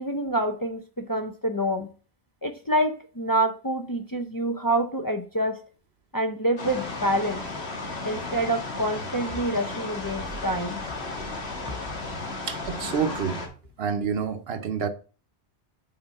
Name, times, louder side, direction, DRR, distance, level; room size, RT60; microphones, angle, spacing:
voice 1, 0.0-1.9 2.4-5.6 6.1-7.5 8.0-10.8, right 1 dB, 25° left, 0.6 m, -27 dB
sound 1, 6.6-13.5, left 2 dB, 80° left, 1.8 m, -34 dB
voice 2, 12.5-13.4 13.8-14.9, right 6 dB, 70° right, 1.0 m, -28 dB
5.8 x 4.2 x 5.4 m
omnidirectional pair, 1.1 m